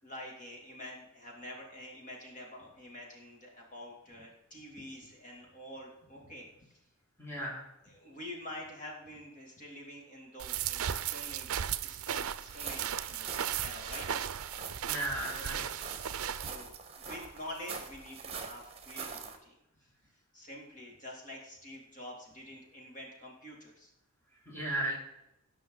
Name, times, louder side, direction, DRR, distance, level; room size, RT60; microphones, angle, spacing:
voice 1, 0.0-6.8 7.8-13.3 13.6-14.1 15.3-15.7 16.3-16.7 17.1-19.6 20.3-23.9, left 1 dB, 35° left, -2 dB, 2.7 m, -47 dB
voice 2, 7.2-7.6 14.9-15.6 24.5-24.9, right 1 dB, 10° left, -4 dB, 2.5 m, -35 dB
sound 1, 10.4-16.6, right 9 dB, 70° right, 0.5 m, -36 dB
sound 2, 12.4-19.4, right 5 dB, 30° right, 1.4 m, -44 dB
18.0 x 6.1 x 3.9 m, 0.88 s
head